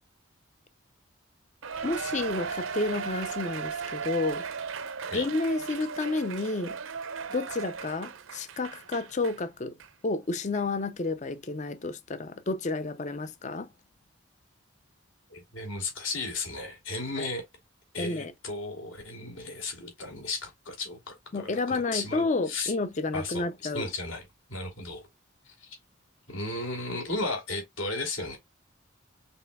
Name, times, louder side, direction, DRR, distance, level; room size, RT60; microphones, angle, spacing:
Cheering, 1.6-9.4 9.8-9.9 10.5-10.6, right 6 dB, 80° right, 0.7 m, -36 dB
voice 1, 1.8-4.4 5.1-6.8 7.3-9.7 10.0-13.7 17.2-17.3 18.0-18.3 21.3-23.9, left 3 dB, 35° left, 0.5 m, -30 dB
voice 2, 15.3-17.4 17.9-22.7 23.1-24.2 24.5-25.0 25.4-25.8 26.3-28.4, left 2 dB, 75° left, 3.0 m, -35 dB
5.4 x 4.1 x 2.3 m
head